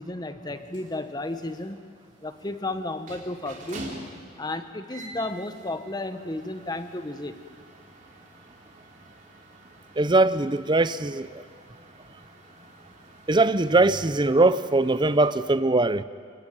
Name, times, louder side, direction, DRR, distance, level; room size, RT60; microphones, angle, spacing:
voice 1, 0.0-1.8 2.2-3.9 4.4-7.4, left 2 dB, 20° left, 1.2 m, -33 dB
sound 1, 0.6-15.5, right 2 dB, 45° right, 4.4 m, -47 dB
voice 2, 10.0-11.4 13.3-16.0, right 2 dB, 25° right, 0.6 m, -21 dB
29.0 x 18.0 x 9.4 m
head